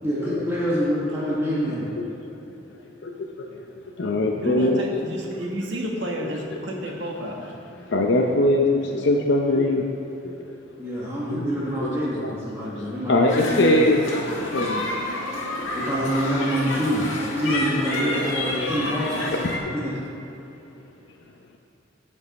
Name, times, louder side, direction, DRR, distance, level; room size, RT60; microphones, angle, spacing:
voice 1, 0.0-1.9 10.8-13.8 15.7-17.1 17.3-19.2 19.7-19.9, equal, 15° right, -7 dB, 1.4 m, -26 dB
voice 2, 1.7-2.0 3.0-3.5 4.0-5.0 6.2-6.6 7.8-9.9 10.2-10.4 11.3-11.5 11.8-11.9 12.2-12.3 12.7-14.0 14.5-14.9 18.2-18.4 19.6-19.7, left 2 dB, 65° left, 1 dB, 0.7 m, -22 dB
voice 3, 4.4-7.4, equal, 65° right, -1 dB, 1.5 m, -30 dB
sound 1, 13.3-19.6, left 1 dB, 85° left, 1.6 m, -29 dB
16.0 x 5.4 x 4.1 m, 2.9 s
head